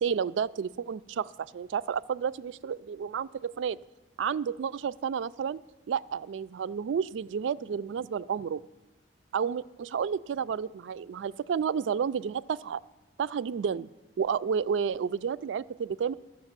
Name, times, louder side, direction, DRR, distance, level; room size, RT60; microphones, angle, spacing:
voice 1, 0.0-3.8 4.2-5.6 5.9-8.6 9.3-12.8 13.2-13.9 14.2-16.1, right 7 dB, 85° right, 17 dB, 0.3 m, -31 dB
13.5 x 6.0 x 7.3 m, 1.1 s
head